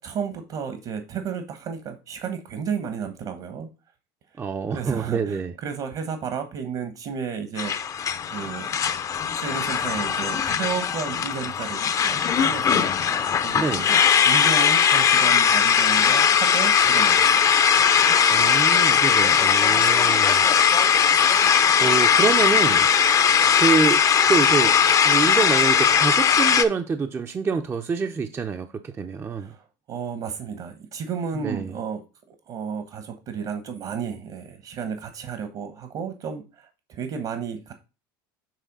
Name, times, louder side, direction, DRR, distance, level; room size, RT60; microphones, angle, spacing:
voice 1, 0.0-3.7 4.7-7.8 8.3-8.8 9.3-14.0 14.2-18.2 29.4-32.0 32.3-37.7, right 6 dB, 50° right, 1.1 m, -33 dB
voice 2, 4.4-5.5 13.6-13.9 18.3-20.4 21.1-22.9 23.6-24.8 25.0-29.5 31.4-31.7, right 5 dB, 20° right, 0.5 m, -26 dB
sound 1, 7.6-26.6, left 7 dB, 30° left, 0.6 m, -19 dB
7.5 x 3.3 x 5.3 m
supercardioid pair, 110°, 11 cm